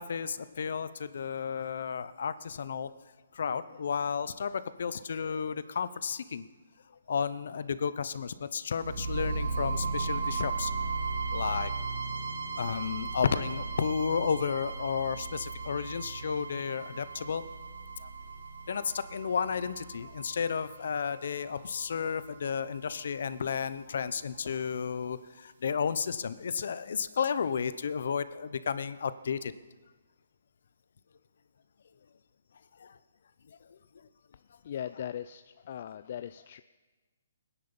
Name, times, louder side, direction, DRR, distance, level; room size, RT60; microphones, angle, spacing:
voice 1, 0.0-2.9 3.3-6.5 7.1-10.7 11.3-11.7 12.6-17.4 18.0-18.1 18.7-29.5 32.8-32.9, left 6 dB, 65° left, 14 dB, 0.9 m, -32 dB
sound 1, 8.8-22.8, right 4 dB, 75° right, 5.5 m, -36 dB
voice 2, 34.6-36.6, left 10 dB, 45° left, 11 dB, 0.4 m, -39 dB
19.5 x 10.0 x 7.2 m, 1.3 s
hypercardioid pair, 155°, 0 cm